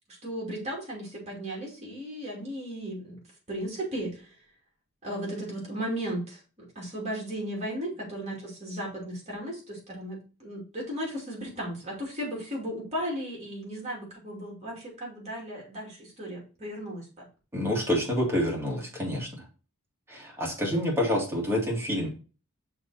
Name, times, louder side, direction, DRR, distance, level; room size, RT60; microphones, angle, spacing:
voice 1, 0.2-3.2 3.5-4.3 5.0-17.3, right 1 dB, 30° right, -2 dB, 2.7 m, -35 dB
voice 2, 17.5-19.3 20.1-22.1, equal, 10° right, -3 dB, 2.2 m, -27 dB
6.2 x 3.7 x 4.2 m, 0.35 s
head